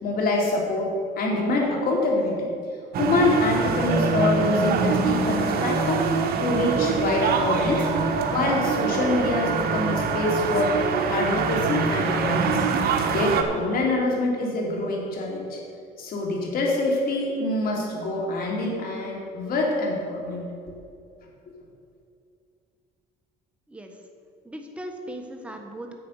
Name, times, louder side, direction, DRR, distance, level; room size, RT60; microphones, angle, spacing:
voice 1, 0.0-2.5 3.0-6.0 6.4-7.9 8.3-10.8 11.1-12.6 13.1-15.6 16.0-20.4 21.5-21.6, left 2 dB, 60° left, -1 dB, 2.9 m, -25 dB
sound 1, 2.9-13.4, right 5 dB, 65° right, 1.2 m, -24 dB
voice 2, 23.7-24.0 24.4-26.0, right 1 dB, 5° right, 3 dB, 1.4 m, -38 dB
9.5 x 7.7 x 6.5 m, 2.4 s
cardioid pair, 110°, 17 cm